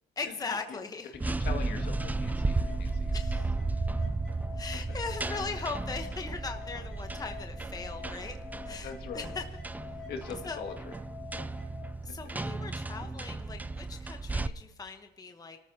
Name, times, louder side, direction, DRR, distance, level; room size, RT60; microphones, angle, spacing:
voice 1, 0.2-1.1 3.1-3.5 4.6-8.4 8.7-9.4 10.4-10.6 12.0-15.6, left 4 dB, 20° left, 5 dB, 1.1 m, -39 dB
sound 1, 1.1-14.5, right 3 dB, 10° right, 0.5 m, -34 dB
voice 2, 1.2-3.4 8.8-9.3 10.1-11.0, left 5 dB, 65° left, 4 dB, 2.2 m, -42 dB
sound 2, 1.8-11.8, left 7 dB, 5° left, 3.3 m, -48 dB
28.5 x 13.5 x 2.9 m, 0.92 s
cardioid pair, 110°, 17 cm